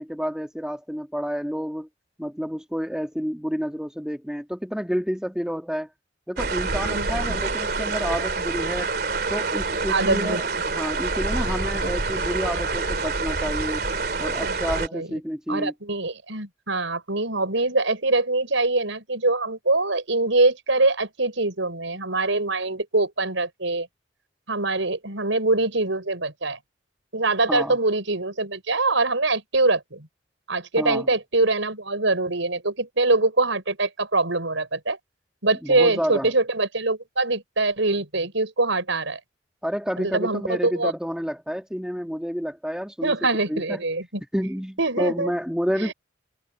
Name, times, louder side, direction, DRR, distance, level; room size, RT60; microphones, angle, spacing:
voice 1, 0.0-1.9 2.2-5.9 6.3-8.9 9.3-10.4 10.7-13.8 14.2-15.7 27.5-27.8 30.8-31.1 35.6-36.3 39.6-43.1 43.5-43.8 44.3-45.9, equal, 5° right, 2.3 m, -29 dB
sound 1, 6.4-14.9, right 3 dB, 50° right, 3.2 m, -27 dB
voice 2, 6.8-7.4 7.7-7.8 9.9-10.4 14.4-14.6 14.9-15.1 15.5-23.9 24.5-26.6 27.1-30.1 30.5-35.0 35.4-39.2 40.0-40.9 43.0-44.2 44.8-45.3 45.8-45.9, right 2 dB, 85° right, 6.0 m, -24 dB
head